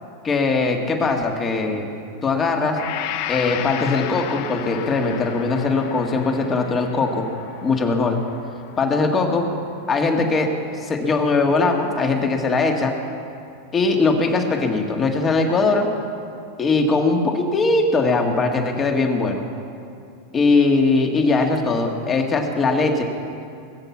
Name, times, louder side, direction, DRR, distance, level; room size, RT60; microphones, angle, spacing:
voice 1, 0.2-1.9 2.2-2.8 3.3-7.3 7.6-8.2 8.8-9.5 9.9-10.5 10.8-12.9 13.7-15.9 16.6-19.5 20.3-23.0, left 3 dB, 25° left, 3 dB, 1.9 m, -20 dB
Gong, 2.8-10.8, left 12 dB, 55° left, 0.7 m, -34 dB
20.0 x 8.0 x 7.2 m, 2.6 s
supercardioid pair, 130°, 0 cm